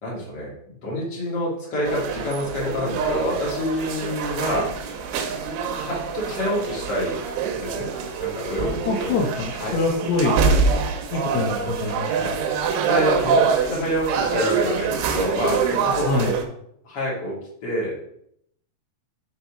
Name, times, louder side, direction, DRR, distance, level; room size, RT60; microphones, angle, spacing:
voice 1, 0.0-4.7 5.7-7.2 7.6-7.9 8.2-9.1 9.6-9.7 11.3-11.8 12.9-16.1 16.8-18.0, left 1 dB, 35° left, -5 dB, 1.9 m, -27 dB
sound 1, 1.8-16.4, right 5 dB, 80° right, 2.6 m, -25 dB
voice 2, 8.8-10.4 11.1-12.4 16.0-16.4, left 3 dB, 85° left, -3 dB, 1.6 m, -25 dB
5.9 x 4.0 x 4.8 m, 0.71 s
omnidirectional pair, 4.7 m